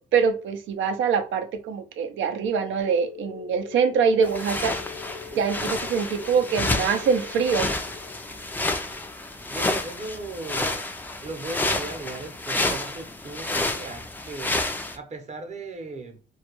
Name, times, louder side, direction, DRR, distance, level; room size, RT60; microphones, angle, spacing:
voice 1, 0.0-4.8 5.4-7.7, right 6 dB, 80° right, 0.5 m, -24 dB
sound 1, 2.8-11.1, left 7 dB, 90° left, 0.5 m, -43 dB
sound 2, 4.2-15.0, left 2 dB, 10° left, 0.3 m, -29 dB
voice 2, 9.3-10.9 11.2-16.2, right 3 dB, 35° right, 0.7 m, -37 dB
2.3 x 2.1 x 2.9 m
cardioid pair, 90°, 20 cm